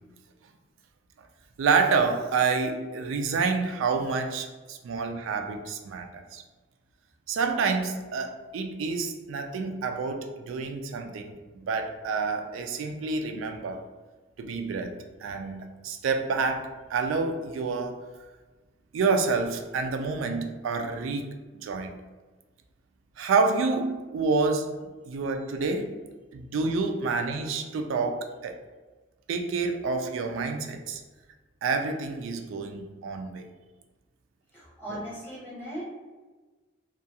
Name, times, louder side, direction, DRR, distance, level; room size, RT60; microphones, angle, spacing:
voice 1, 1.6-6.4 7.3-13.9 14.4-14.9 15.2-18.0 18.9-21.2 21.5-21.9 23.2-25.9 26.3-28.6 29.3-31.0 31.6-33.5 34.9-35.0, right 4 dB, 80° right, 5 dB, 0.3 m, -28 dB
voice 2, 34.5-35.8, equal, 10° left, -7 dB, 0.8 m, -38 dB
2.4 x 2.2 x 2.7 m, 1.3 s
head